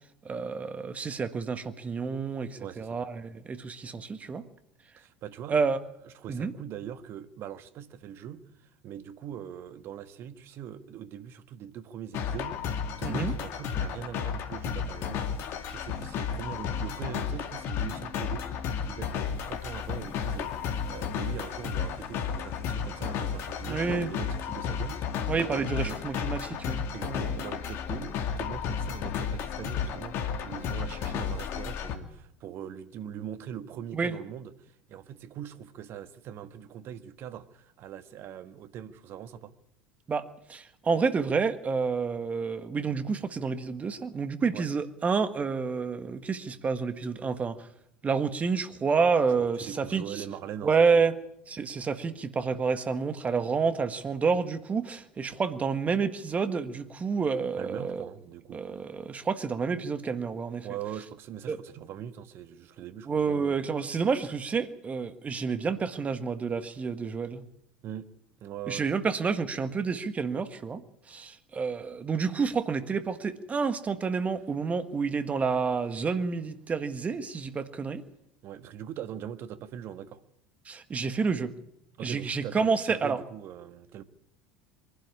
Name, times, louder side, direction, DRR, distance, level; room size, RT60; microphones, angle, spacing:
voice 1, 0.2-4.4 5.5-5.8 6.3-6.5 13.0-13.3 23.6-24.1 25.3-27.3 33.9-34.2 40.1-47.7 48.0-50.2 50.6-51.1 51.5-58.1 58.5-60.7 61.5-61.6 63.1-67.4 68.7-70.8 71.1-78.0 80.6-81.5 82.0-83.2, right 5 dB, 25° right, 1.7 m, -29 dB
voice 2, 2.3-3.0 5.0-5.6 6.0-18.5 18.8-26.0 26.9-39.5 44.5-44.7 49.4-51.1 57.5-58.6 60.6-63.6 67.8-68.1 68.4-68.9 78.4-80.2 82.0-84.0, right 9 dB, 50° right, 1.4 m, -42 dB
sound 1, 12.1-32.0, left 7 dB, 50° left, 2.3 m, -33 dB
23.5 x 11.5 x 9.9 m
hypercardioid pair, 75°, 5 cm